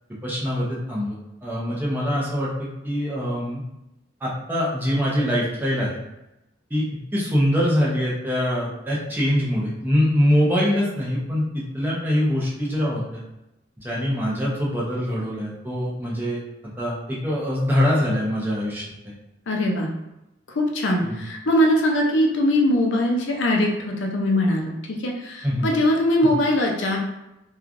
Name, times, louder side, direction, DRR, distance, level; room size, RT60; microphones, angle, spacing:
voice 1, 0.2-1.2 1.4-3.6 4.2-6.0 6.7-6.8 7.1-13.2 13.8-16.4 16.8-19.1 21.0-21.2 25.4-25.7, equal, 10° right, -6 dB, 0.6 m, -23 dB
voice 2, 19.5-19.9 20.5-27.0, left 1 dB, 80° left, 0 dB, 0.5 m, -21 dB
3.1 x 2.3 x 2.4 m, 0.92 s
head